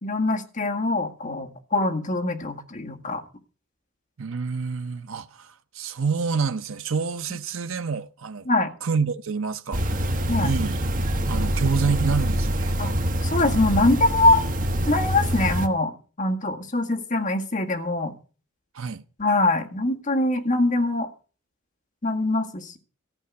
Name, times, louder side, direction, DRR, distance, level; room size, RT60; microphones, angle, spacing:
voice 1, 0.0-3.2 8.5-8.7 10.3-10.5 12.8-12.9 13.2-14.4 14.9-18.1 19.2-21.1 22.0-22.8, left 2 dB, 40° left, 1.9 m, -23 dB
voice 2, 4.2-8.5 8.8-10.1 10.4-10.8 11.3-12.8 18.7-19.0, right 5 dB, 70° right, 0.7 m, -28 dB
sound 1, 9.7-15.7, equal, 40° right, 1.1 m, -25 dB
14.0 x 5.6 x 9.4 m
head